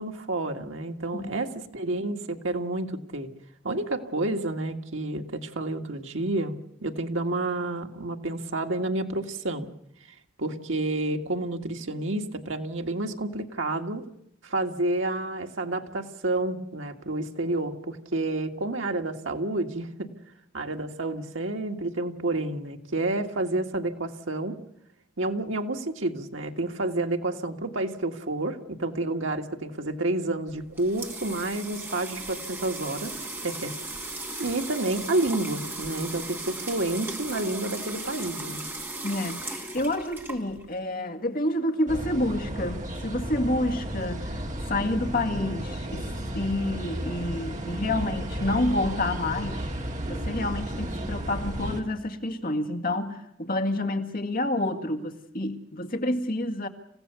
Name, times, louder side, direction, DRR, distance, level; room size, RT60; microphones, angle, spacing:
voice 1, 0.0-3.3 3.6-6.5 6.8-9.7 10.4-14.0 14.4-20.1 20.5-24.6 25.2-33.1 33.4-33.7 34.4-38.6, right 2 dB, 75° right, 1.8 m, -29 dB
sound 1, 30.5-40.8, right 2 dB, 10° right, 2.5 m, -37 dB
voice 2, 39.0-44.4 44.7-46.1 46.3-49.7 50.1-56.7, left 1 dB, 45° left, 1.9 m, -28 dB
sound 2, 41.9-51.8, equal, 40° right, 2.6 m, -33 dB
27.5 x 16.0 x 6.9 m
head